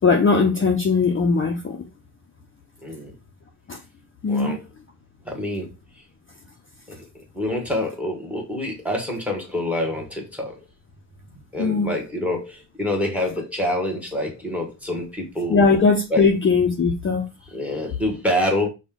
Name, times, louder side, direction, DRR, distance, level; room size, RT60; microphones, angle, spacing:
voice 1, 0.0-1.8 3.7-3.8 4.2-4.6 11.6-11.9 15.5-17.2, left 4 dB, 30° left, 0.5 m, -19 dB
voice 2, 2.8-3.1 4.3-4.6 5.2-5.7 6.9-7.0 7.3-10.6 11.5-15.6 16.1-16.3 17.5-18.7, left 1 dB, 5° right, 1.0 m, -26 dB
6.0 x 2.2 x 3.6 m
wide cardioid pair, 175°, 42 cm